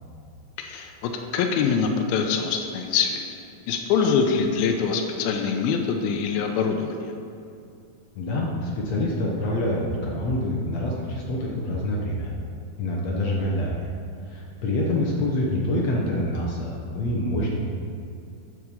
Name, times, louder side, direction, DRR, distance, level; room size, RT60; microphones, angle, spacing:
voice 1, 0.6-3.4 3.7-7.0, left 6 dB, 85° left, 3 dB, 2.5 m, -24 dB
voice 2, 8.1-12.3 12.8-13.9 14.3-17.6, left 1 dB, 65° left, -3 dB, 1.7 m, -26 dB
11.0 x 4.9 x 7.0 m, 2.5 s
omnidirectional pair, 4.4 m